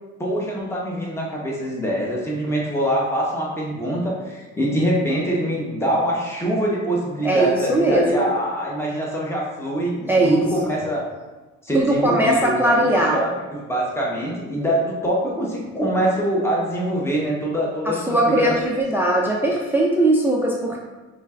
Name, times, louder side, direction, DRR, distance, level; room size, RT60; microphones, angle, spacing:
voice 1, 0.2-11.1 11.6-18.8, right 1 dB, 10° left, -4 dB, 1.0 m, -24 dB
voice 2, 7.2-8.3 10.1-10.4 11.7-13.2 17.9-20.8, right 1 dB, 5° right, -2 dB, 0.4 m, -19 dB
4.2 x 3.2 x 2.4 m, 1.2 s
cardioid pair, 90°, 30 cm